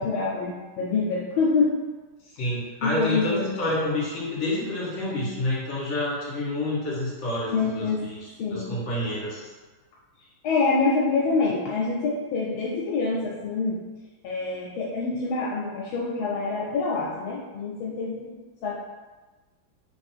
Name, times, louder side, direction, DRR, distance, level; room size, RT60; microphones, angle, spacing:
voice 1, 0.0-1.7 2.8-3.6 7.5-8.1 8.4-8.8 10.4-13.8 14.2-18.3 18.6-18.7, left 4 dB, 80° left, -4 dB, 1.4 m, -26 dB
voice 2, 2.4-7.9 8.2-9.5, left 1 dB, 45° left, -7 dB, 1.8 m, -28 dB
3.6 x 2.5 x 4.3 m, 1.3 s
omnidirectional pair, 2.3 m